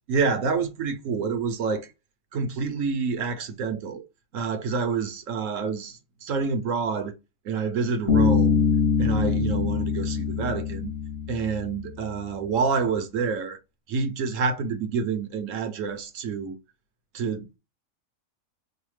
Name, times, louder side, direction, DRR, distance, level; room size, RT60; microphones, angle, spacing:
voice 1, 0.1-1.9 2.3-4.0 4.3-7.1 7.4-8.6 9.0-10.9 11.3-13.6 13.9-16.6 17.1-17.6, right 5 dB, 70° right, 1.0 m, -28 dB
Bass guitar, 8.1-11.8, left 6 dB, 45° left, 0.9 m, -23 dB
4.8 x 2.2 x 3.1 m
omnidirectional pair, 1.5 m